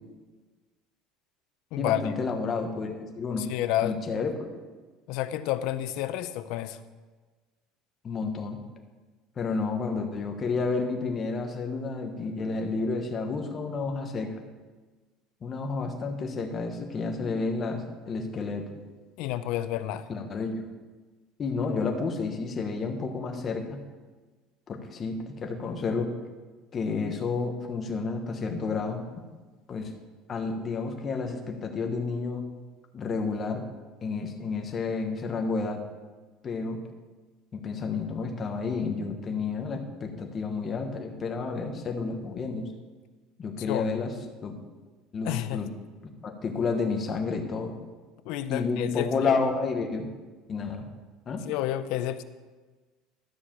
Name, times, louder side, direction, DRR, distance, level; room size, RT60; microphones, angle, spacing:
voice 1, 1.8-3.5 3.8-4.3 8.0-8.6 9.4-14.3 15.4-18.7 20.1-20.6 21.4-23.8 24.7-26.1 26.7-29.2 29.7-29.9 30.3-32.4 32.9-33.6 34.0-35.8 36.4-36.8 37.5-42.7 43.4-44.1 44.4-44.6 45.1-45.7 46.0-47.8 48.5-50.1 50.5-50.9 51.3-51.4, left 4 dB, 25° left, 4 dB, 1.1 m, -30 dB
voice 2, 3.4-4.0 5.1-6.8 19.2-20.1 43.7-44.1 45.2-45.6 48.2-49.3 51.4-52.2, left 13 dB, 60° left, 12 dB, 0.6 m, -30 dB
13.0 x 4.8 x 7.3 m, 1.3 s
cardioid pair, 170°, 0 cm